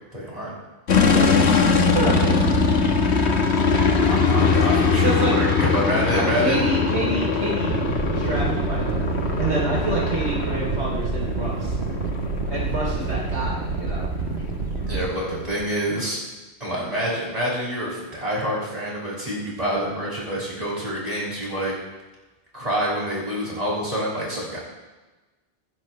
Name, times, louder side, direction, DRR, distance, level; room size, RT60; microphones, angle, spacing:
voice 1, 0.1-0.5 4.0-6.7 14.9-16.2 16.6-21.7 22.5-24.6, equal, 35° right, -6 dB, 6.1 m, -27 dB
sound 1, 0.9-15.7, left 4 dB, 80° left, 1.6 m, -22 dB
voice 2, 0.9-1.4 1.9-2.6 5.0-5.3 6.1-9.1 9.4-11.8 12.5-14.1, right 2 dB, 90° right, -4 dB, 3.6 m, -28 dB
sound 2, 7.7-15.1, right 5 dB, 70° right, 1.1 m, -28 dB
26.0 x 10.5 x 3.2 m, 1.1 s
omnidirectional pair, 1.1 m